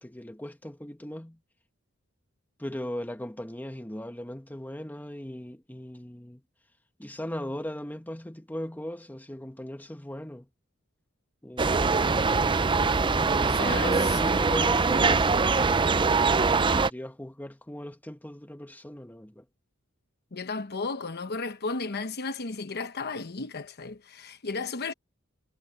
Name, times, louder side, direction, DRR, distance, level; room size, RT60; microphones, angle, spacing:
voice 1, 0.0-1.4 2.6-6.4 7.0-10.5 13.0-19.4, left 1 dB, 10° left, 1.4 m, -38 dB
sound 1, 11.6-16.9, right 4 dB, 25° right, 0.6 m, -23 dB
voice 2, 13.4-14.4 20.3-24.9, left 4 dB, 50° left, 1.0 m, -34 dB
head